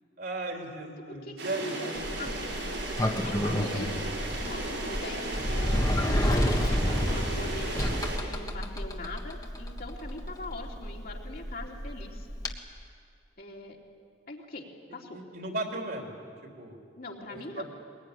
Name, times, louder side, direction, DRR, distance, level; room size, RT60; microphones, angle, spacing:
voice 1, 0.2-2.4 15.1-16.2 16.6-16.8 17.3-17.7, right 2 dB, 60° right, 2 dB, 3.4 m, -36 dB
voice 2, 1.1-2.3 3.0-4.0 4.4-12.3 13.4-13.8 14.3-15.2 17.0-17.7, left 2 dB, 55° left, -1 dB, 3.2 m, -42 dB
sound 1, 1.4-8.2, right 2 dB, 90° right, 7.7 m, -35 dB
Sliding door, 2.0-12.5, equal, 20° left, 1.5 m, -30 dB
22.5 x 20.5 x 9.9 m, 2.2 s
head